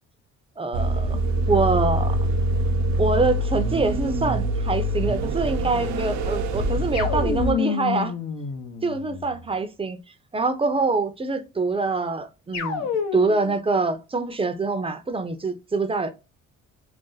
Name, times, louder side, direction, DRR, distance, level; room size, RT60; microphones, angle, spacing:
voice 1, 0.6-1.2 1.5-2.2 3.0-8.1 8.8-10.0 10.3-16.1, right 3 dB, 20° right, 0.5 m, -25 dB
sound 1, 0.7-7.5, right 1 dB, 70° right, 0.6 m, -24 dB
sound 2, 6.9-9.4 12.5-13.6, left 7 dB, 65° left, 0.8 m, -29 dB
2.6 x 2.1 x 3.8 m
cardioid pair, 90°, 30 cm